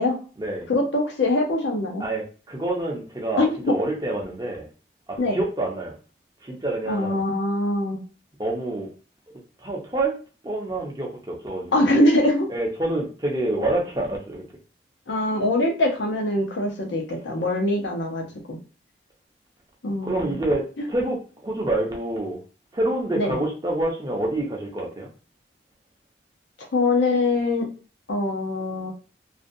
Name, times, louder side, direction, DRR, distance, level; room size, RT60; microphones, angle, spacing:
voice 1, 0.7-2.0 3.4-3.7 5.2-5.4 6.9-8.0 11.7-12.5 15.1-18.6 19.8-20.3 20.8-20.9 23.1-23.4 26.7-27.7 28.1-28.9, left 2 dB, 85° left, 1 dB, 0.7 m, -23 dB
voice 2, 2.0-4.7 5.1-5.9 6.4-7.2 8.4-8.9 9.6-10.2 10.4-11.9 12.5-14.4 20.0-22.4 22.7-25.1, right 1 dB, 20° right, -1 dB, 0.5 m, -27 dB
2.5 x 2.2 x 2.6 m, 0.37 s
head